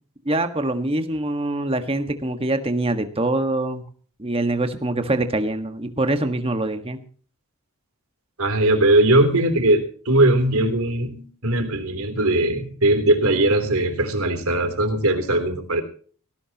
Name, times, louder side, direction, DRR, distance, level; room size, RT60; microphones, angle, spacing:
voice 1, 0.2-3.8 4.2-7.0, right 2 dB, 25° right, 7 dB, 1.6 m, -24 dB
voice 2, 8.4-15.8, right 1 dB, 80° right, 8 dB, 3.4 m, -20 dB
18.0 x 18.0 x 3.0 m, 0.43 s
head